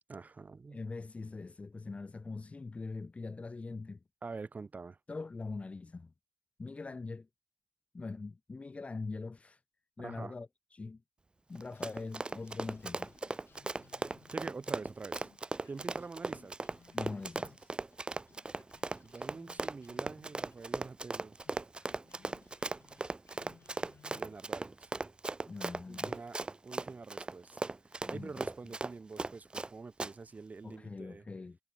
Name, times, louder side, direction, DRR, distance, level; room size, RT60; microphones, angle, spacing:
voice 1, 0.1-0.8 4.2-5.0 10.0-10.3 14.3-15.3 15.7-16.5 19.0-21.4 24.1-24.9 25.9-26.4 26.6-31.2, right 4 dB, 40° right, 4.4 m, -46 dB
voice 2, 0.7-4.0 5.1-6.1 6.6-7.3 7.9-9.6 10.0-11.0 11.5-13.1 16.9-17.7 25.5-26.2 28.1-28.5 30.6-31.6, left 3 dB, 35° left, 1.1 m, -42 dB
Run, 11.5-29.7 30.0-30.1, right 3 dB, 25° right, 0.4 m, -37 dB
sound 1, 11.7-18.0 18.3-24.5, left 7 dB, 80° left, 3.3 m, -63 dB
wide cardioid pair, 100°, 4 cm